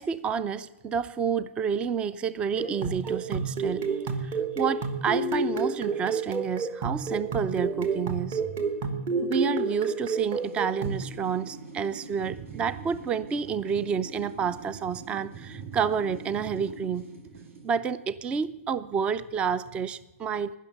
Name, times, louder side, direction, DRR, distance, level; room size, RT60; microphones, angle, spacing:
voice 1, 0.0-3.9 4.2-8.4 9.2-17.1 17.6-20.5, right 6 dB, 15° right, 16 dB, 0.3 m, -29 dB
sound 1, 2.6-11.1, right 4 dB, 30° right, 1.3 m, -29 dB
sound 2, 10.2-17.7, right 3 dB, 70° right, 2.7 m, -45 dB
19.0 x 6.4 x 6.5 m, 1.0 s
hypercardioid pair, 140°, 7 cm